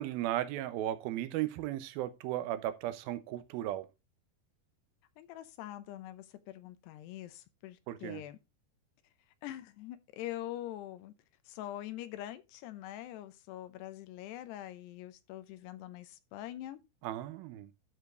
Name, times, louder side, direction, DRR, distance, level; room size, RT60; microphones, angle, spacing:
voice 1, 0.0-3.9 7.9-8.2 17.0-17.7, right 13 dB, 75° right, 2.5 m, -35 dB
voice 2, 5.2-8.4 9.4-11.1 11.5-16.8, left 13 dB, 80° left, 2.8 m, -44 dB
12.5 x 5.1 x 3.8 m
omnidirectional pair, 4.9 m